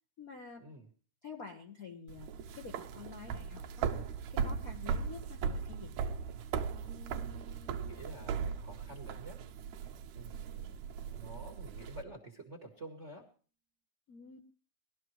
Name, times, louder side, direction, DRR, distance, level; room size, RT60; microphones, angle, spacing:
voice 1, 0.2-0.6 1.2-3.9 4.3-5.9 14.1-14.4, left 5 dB, 75° left, 1 dB, 0.8 m, -49 dB
sound 1, 2.1-12.0, right 6 dB, 75° right, 2.0 m, -38 dB
sound 2, 6.9-10.6, right 7 dB, 10° left, 0.6 m, -59 dB
voice 2, 7.1-9.4 10.1-13.2, right 2 dB, 45° right, 2 dB, 0.9 m, -50 dB
19.5 x 12.0 x 3.1 m, 0.40 s
omnidirectional pair, 3.4 m